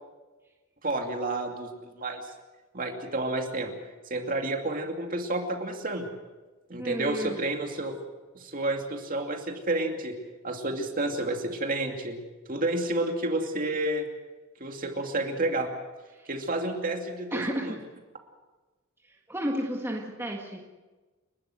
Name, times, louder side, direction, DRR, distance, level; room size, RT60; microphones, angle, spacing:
voice 1, 0.8-2.3 2.7-3.7 4.1-6.1 6.7-8.0 8.3-10.2 10.4-12.2 12.5-14.1 14.6-15.7 16.3-17.7, right 2 dB, 40° right, 3 dB, 2.6 m, -30 dB
voice 2, 6.8-7.4 16.1-16.3 17.3-17.9 19.3-20.7, equal, 10° right, 0 dB, 1.7 m, -32 dB
30.0 x 12.5 x 7.9 m, 1.2 s
head